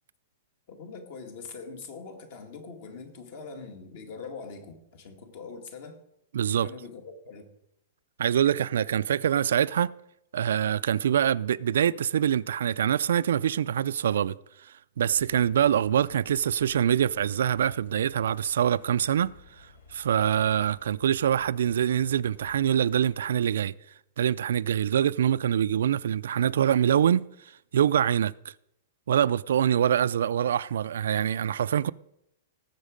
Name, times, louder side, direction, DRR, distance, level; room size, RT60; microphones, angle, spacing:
voice 1, 0.7-6.0 6.6-7.5, left 4 dB, 40° left, 2.0 m, -42 dB
voice 2, 6.3-6.7 8.2-9.9 10.3-14.4 14.6-23.7 24.2-27.3 27.7-28.3 29.1-31.9, right 9 dB, 75° right, 0.4 m, -25 dB
sound 1, 15.1-23.2, left 3 dB, 80° left, 4.1 m, -54 dB
18.0 x 7.3 x 5.1 m
hypercardioid pair, 170°, 0 cm